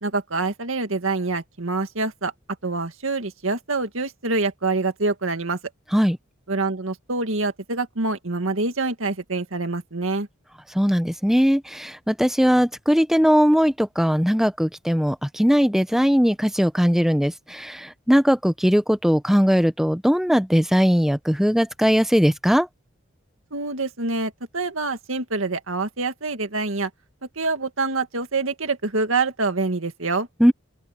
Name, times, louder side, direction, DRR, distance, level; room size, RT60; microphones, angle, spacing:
voice 1, 0.0-2.3 2.6-5.6 6.5-10.3 23.5-26.9 27.4-30.3, right 3 dB, 80° right, 2.0 m, -26 dB
voice 2, 10.7-22.7 30.4-30.5, equal, ahead, 0.8 m, -19 dB
open air
head